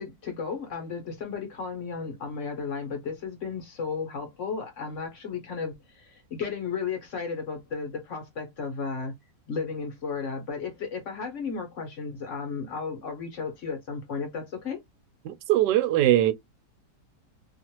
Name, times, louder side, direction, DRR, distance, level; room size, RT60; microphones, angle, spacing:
voice 1, 0.0-9.1 9.5-14.8, left 5 dB, 50° left, 1.2 m, -34 dB
voice 2, 15.2-16.3, right 13 dB, 85° right, 1.2 m, -21 dB
2.9 x 2.5 x 2.8 m
omnidirectional pair, 1.8 m